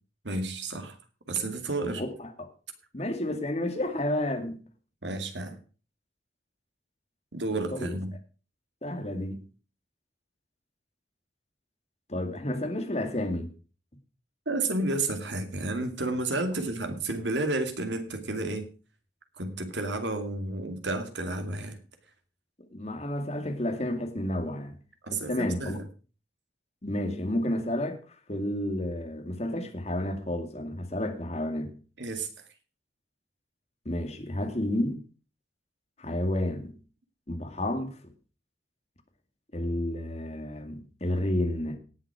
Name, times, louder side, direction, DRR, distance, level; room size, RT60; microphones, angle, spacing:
voice 1, 0.2-1.0 1.3-2.0 5.0-5.6 7.3-8.1 14.5-18.7 19.4-21.8 25.0-25.9 32.0-32.3, right 2 dB, 80° right, 2.4 m, -31 dB
voice 2, 1.9-2.5 2.9-4.6 7.5-8.0 8.8-9.5 12.1-13.5 22.7-24.8 25.1-25.8 26.8-28.0 28.3-31.7 33.9-35.0 36.0-36.7 37.3-38.0 39.5-41.8, left 1 dB, 35° left, 2.3 m, -31 dB
18.0 x 7.6 x 4.9 m
head